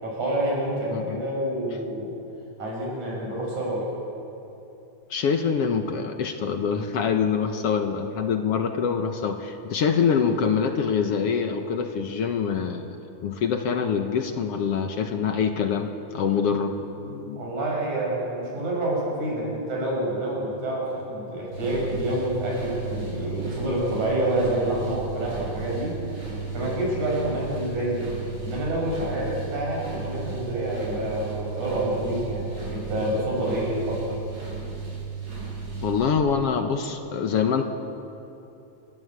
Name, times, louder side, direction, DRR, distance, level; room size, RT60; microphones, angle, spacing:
voice 1, 0.0-2.1 2.6-3.9 17.3-26.0 26.5-28.1 28.4-34.2, right 1 dB, 85° right, -3 dB, 8.3 m, -28 dB
voice 2, 5.1-12.9 13.2-17.4 35.8-37.6, left 6 dB, 60° left, 6 dB, 1.9 m, -25 dB
sound 1, 21.5-36.1, right 5 dB, 35° right, 7.0 m, -35 dB
28.0 x 17.0 x 8.1 m, 2.9 s
omnidirectional pair, 3.3 m